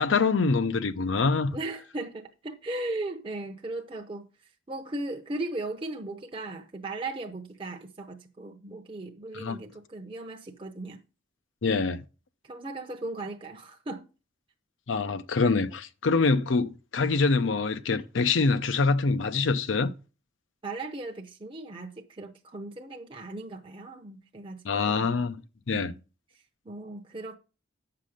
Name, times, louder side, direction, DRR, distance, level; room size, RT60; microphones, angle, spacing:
voice 1, 0.0-1.6 9.3-9.6 11.6-12.0 14.9-19.9 24.6-25.4 25.7-25.9, left 4 dB, 80° left, 0.6 m, -25 dB
voice 2, 1.5-4.2 4.7-11.0 11.6-11.9 12.4-14.0 20.6-25.1 25.7-26.0 26.7-27.4, right 2 dB, 30° right, 0.7 m, -37 dB
8.3 x 5.9 x 5.0 m
head